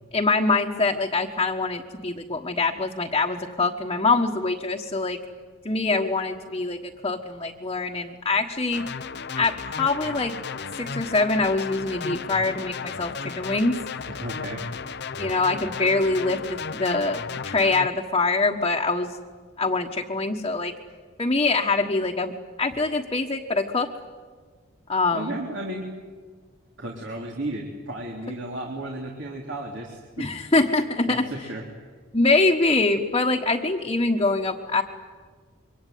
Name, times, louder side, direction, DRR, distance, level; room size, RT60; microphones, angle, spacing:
voice 1, 0.1-5.2 5.6-8.9 9.4-10.4 10.8-13.8 15.2-16.4 16.7-19.1 19.6-20.7 21.2-22.3 22.6-23.9 24.9-25.4 30.2-31.3 32.1-34.8, left 3 dB, 25° left, -1 dB, 1.4 m, -24 dB
sound 1, 8.7-17.9, left 5 dB, 55° left, 0.8 m, -34 dB
voice 2, 14.1-14.6 25.1-25.9 26.8-30.3 31.1-31.6, right 1 dB, 65° right, -1 dB, 3.4 m, -34 dB
26.5 x 24.0 x 9.4 m, 1.5 s
head